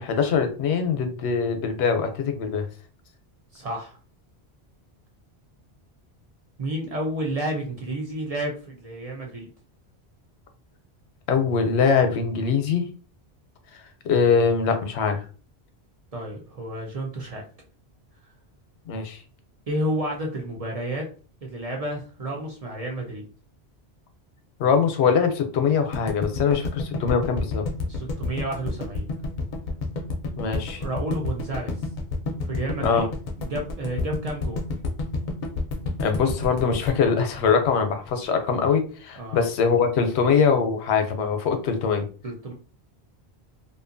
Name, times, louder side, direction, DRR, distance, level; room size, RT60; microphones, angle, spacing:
voice 1, 0.0-2.7 11.3-12.9 14.0-15.2 18.9-19.2 24.6-27.6 30.4-30.8 32.8-33.1 36.0-42.0, left 6 dB, 90° left, 6 dB, 0.8 m, -22 dB
voice 2, 3.5-4.0 6.6-9.5 16.1-17.4 19.7-21.1 21.4-23.2 27.8-29.0 30.7-31.8 32.4-33.1 33.4-34.6 39.2-39.4 42.2-42.5, right 1 dB, 45° right, 0 dB, 0.5 m, -31 dB
sound 1, 25.9-38.1, left 3 dB, 55° left, 0.6 m, -29 dB
2.7 x 2.3 x 2.5 m, 0.38 s
omnidirectional pair, 1.1 m